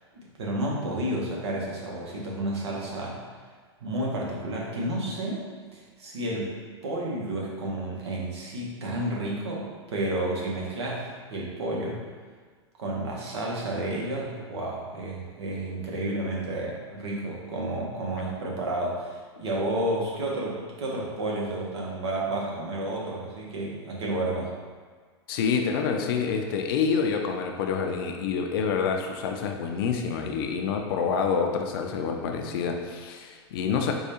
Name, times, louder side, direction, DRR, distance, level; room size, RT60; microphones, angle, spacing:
voice 1, 0.1-3.2 3.8-5.4 5.7-6.5 6.8-12.0 12.8-24.5, right 1 dB, 70° right, -3 dB, 0.9 m, -31 dB
voice 2, 25.3-33.9, left 6 dB, 55° left, 3 dB, 0.5 m, -27 dB
4.6 x 2.3 x 2.8 m, 1.5 s
hypercardioid pair, 95°, 14 cm